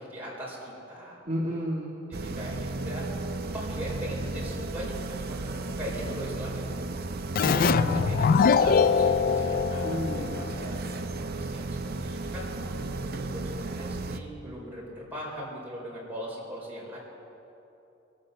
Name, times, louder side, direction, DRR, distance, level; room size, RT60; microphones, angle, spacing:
voice 1, 0.0-1.2 2.1-3.2 3.5-12.8 13.0-17.0, equal, 10° right, -6 dB, 4.4 m, -40 dB
voice 2, 1.3-1.9 7.4-8.2 9.8-10.4, equal, 35° right, -6 dB, 1.7 m, -32 dB
sound 1, 2.1-14.2, right 2 dB, 50° right, 0.6 m, -34 dB
Keyboard (musical), 7.3-10.7, left 6 dB, 45° left, 0.3 m, -23 dB
21.5 x 8.7 x 6.6 m, 2.9 s
head